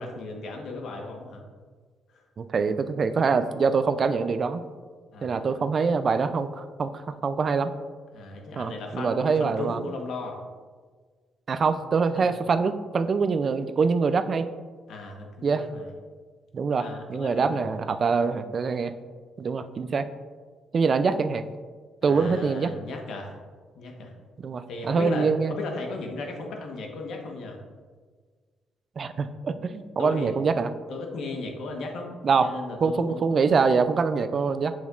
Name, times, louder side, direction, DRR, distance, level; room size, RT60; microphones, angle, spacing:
voice 1, 0.0-1.4 2.1-2.2 5.1-5.6 8.1-10.4 12.1-12.3 14.9-15.9 16.8-18.2 22.0-23.4 23.7-24.1 24.7-27.6 30.0-30.3 30.9-33.5, left 3 dB, 75° left, 2 dB, 1.1 m, -36 dB
voice 2, 2.4-4.6 5.2-6.9 7.2-7.7 8.6-9.8 11.5-14.5 15.4-15.6 16.5-18.9 19.4-20.1 20.7-21.4 22.0-22.7 24.4-25.5 29.0-30.7 32.2-32.5 32.8-34.7, right 5 dB, 45° right, 11 dB, 0.3 m, -24 dB
7.0 x 6.2 x 2.4 m, 1.5 s
cardioid pair, 90°, 0 cm